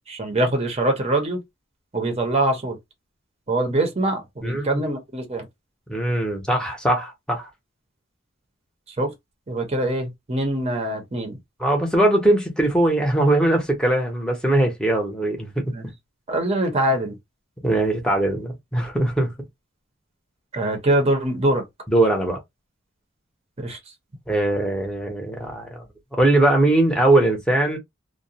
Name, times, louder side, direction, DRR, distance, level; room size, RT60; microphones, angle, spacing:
voice 1, 0.1-1.4 1.9-2.8 3.5-5.5 9.0-9.1 9.5-11.4 15.7-15.9 16.3-17.2 20.5-21.6 23.6-23.8, right 1 dB, 30° right, 0.8 m, -23 dB
voice 2, 4.4-4.8 5.9-7.5 11.6-15.9 17.6-19.3 21.9-22.4 24.3-25.8 26.1-27.8, right 1 dB, 5° left, 0.8 m, -21 dB
2.4 x 2.2 x 2.7 m
head